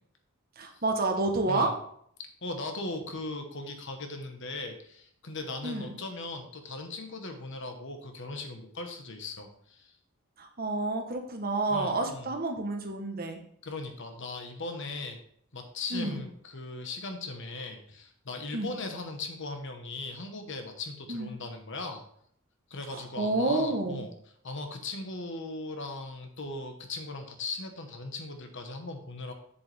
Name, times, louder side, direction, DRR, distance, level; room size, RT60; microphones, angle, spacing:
voice 1, 0.6-1.7 5.6-5.9 10.4-13.4 15.9-16.2 18.5-18.7 21.1-21.4 22.9-24.1, right 2 dB, 45° right, 4 dB, 1.2 m, -29 dB
voice 2, 2.4-10.0 11.7-12.3 13.6-15.2 15.5-22.0 22.7-24.1 24.4-29.3, left 3 dB, 60° left, 5 dB, 1.3 m, -38 dB
7.8 x 7.0 x 3.5 m, 0.65 s
head